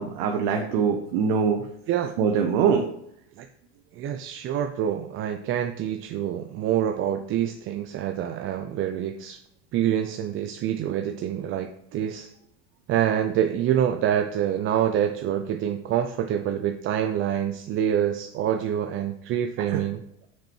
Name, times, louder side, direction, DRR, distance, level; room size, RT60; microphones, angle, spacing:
voice 1, 0.0-1.7 2.2-2.8 19.7-19.8, right 6 dB, 65° right, 3 dB, 1.0 m, -23 dB
voice 2, 3.9-9.4 9.7-12.3 12.9-20.0, right 10 dB, 40° right, 6 dB, 0.5 m, -26 dB
5.8 x 4.6 x 4.4 m, 0.74 s
supercardioid pair, 110°, 34 cm